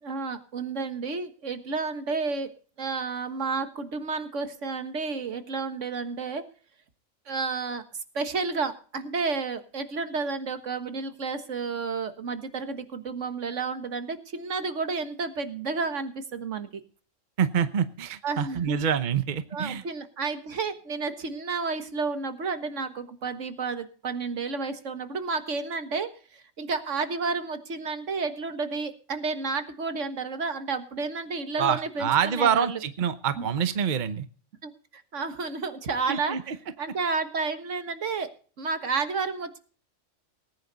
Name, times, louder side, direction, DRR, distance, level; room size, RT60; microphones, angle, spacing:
voice 1, 0.0-6.5 7.3-16.8 18.2-18.8 19.5-32.8 33.4-33.5 34.6-36.4 36.8-39.6, right 4 dB, 70° right, 10 dB, 1.8 m, -31 dB
voice 2, 17.4-19.8 31.6-34.2 36.1-36.6, right 8 dB, 40° right, 12 dB, 0.9 m, -26 dB
19.0 x 9.8 x 4.0 m, 0.41 s
omnidirectional pair, 1.3 m